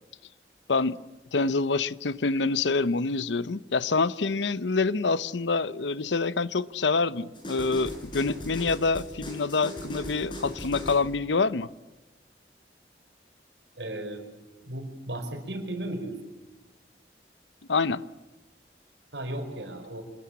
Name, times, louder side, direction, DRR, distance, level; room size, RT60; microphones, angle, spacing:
voice 1, 1.3-11.7 17.7-18.0, left 4 dB, 90° left, 0.8 m, -26 dB
sound 1, 7.3-11.1, left 1 dB, 25° left, 6.6 m, -38 dB
voice 2, 13.8-14.2 14.7-16.1 19.1-20.0, right 1 dB, 80° right, 4.8 m, -35 dB
26.5 x 20.5 x 8.6 m
head